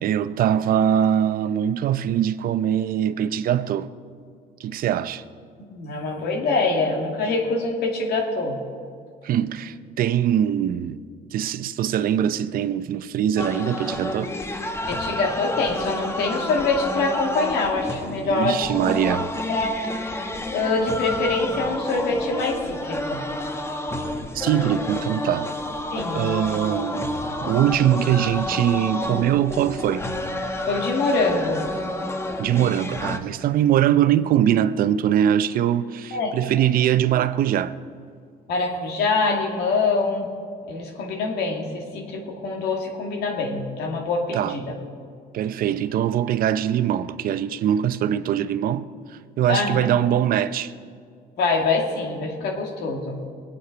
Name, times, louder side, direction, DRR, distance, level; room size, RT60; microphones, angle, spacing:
voice 1, 0.0-3.9 4.6-5.2 9.2-11.0 11.3-14.3 18.2-19.3 24.3-25.5 26.1-30.0 32.4-37.8 44.3-44.5 45.3-50.7, right 10 dB, 60° right, 0.6 m, -22 dB
voice 2, 5.7-8.6 14.9-18.6 19.0-19.1 19.5-19.8 20.1-20.3 20.5-23.2 25.9-26.2 30.7-31.6 36.1-36.3 38.5-40.3 40.7-44.8 49.5-49.9 51.4-53.2, left 3 dB, 70° left, 2.4 m, -24 dB
sound 1, 13.4-33.2, left 1 dB, 15° left, 1.0 m, -30 dB
21.0 x 8.4 x 5.1 m
cardioid pair, 110°, 17 cm